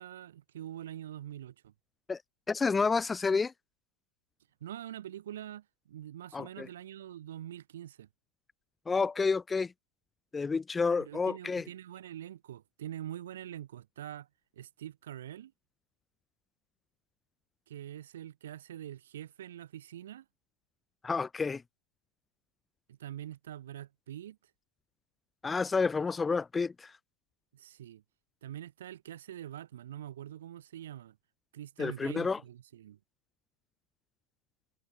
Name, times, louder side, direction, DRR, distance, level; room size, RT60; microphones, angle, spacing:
voice 1, 0.0-1.7 4.6-8.1 11.0-14.3 14.6-15.5 17.7-20.2 22.9-24.4 27.5-28.0 28.4-31.2 31.5-33.0, right 11 dB, 60° right, 2.7 m, -44 dB
voice 2, 2.5-3.5 6.3-6.7 8.9-9.7 10.3-11.6 21.0-21.6 25.4-26.9 31.8-32.4, left 4 dB, 15° left, 0.3 m, -29 dB
figure-of-eight pair, 90°, 0 cm